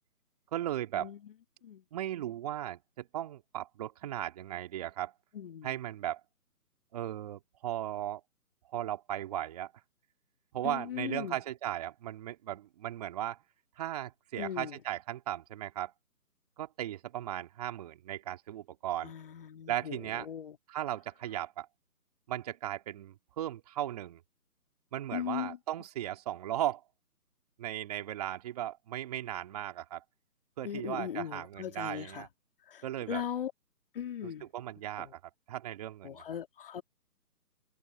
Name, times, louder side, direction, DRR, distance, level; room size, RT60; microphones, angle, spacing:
voice 1, 0.5-1.1 1.9-5.1 5.6-6.2 6.9-8.2 8.7-9.7 10.5-13.4 13.8-15.9 16.6-19.1 19.7-20.3 20.7-21.7 22.3-24.2 24.9-26.8 27.6-30.0 30.6-32.3 32.8-33.2 34.2-35.2 35.5-36.2, right 12 dB, 25° right, 2.7 m, -37 dB
voice 2, 5.3-5.7 10.6-11.4 14.4-14.7 19.0-20.5 25.1-25.6 30.6-32.3 32.7-33.5 33.9-34.5 35.0-35.1 36.0-36.8, left 9 dB, 35° left, 2.8 m, -38 dB
figure-of-eight pair, 160°, 46 cm